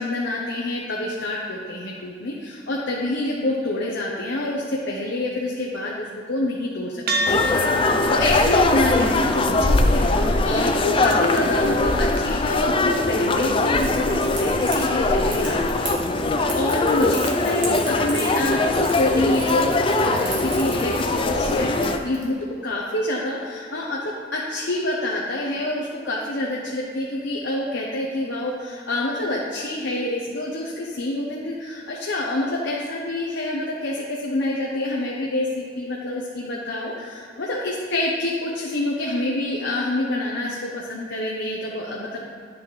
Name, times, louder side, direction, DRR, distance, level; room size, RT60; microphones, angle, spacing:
voice 1, 0.0-7.0 7.3-15.9 16.2-22.4 22.6-42.3, left 1 dB, 85° left, -3 dB, 0.8 m, -27 dB
sound 1, 7.1-15.7, left 1 dB, 60° right, 0.8 m, -33 dB
sound 2, 7.3-22.0, left 2 dB, 30° left, 0.4 m, -21 dB
Crackle, 13.8-22.2, right 3 dB, 80° right, 2.0 m, -35 dB
10.5 x 6.2 x 3.2 m, 2.1 s
head